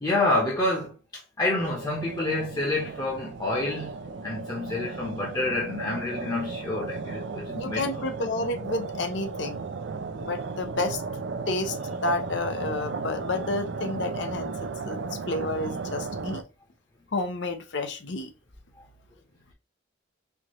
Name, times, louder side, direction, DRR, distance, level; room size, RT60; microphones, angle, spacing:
voice 1, 0.0-0.9 1.4-7.9, left 2 dB, 20° left, 0.8 m, -28 dB
sound 1, 1.6-16.4, right 4 dB, 70° right, 0.4 m, -35 dB
voice 2, 7.5-9.7 10.2-11.0 11.5-11.8 12.0-15.0 15.3-16.4 17.1-18.3, left 2 dB, 70° left, 0.6 m, -30 dB
4.5 x 2.4 x 3.0 m
head